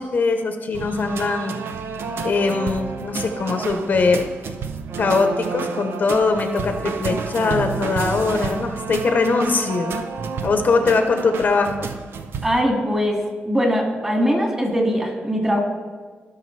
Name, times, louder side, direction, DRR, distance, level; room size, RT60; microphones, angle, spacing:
voice 1, 0.0-1.5 2.2-4.2 5.0-10.0 10.4-11.9, left 4 dB, 50° left, 5 dB, 0.8 m, -21 dB
sound 1, 0.7-12.6, right 5 dB, 80° right, 0.6 m, -30 dB
voice 2, 12.4-13.2 13.4-15.6, equal, 15° right, 0 dB, 2.1 m, -21 dB
16.5 x 6.1 x 3.3 m, 1.4 s
wide cardioid pair, 130°, 4 cm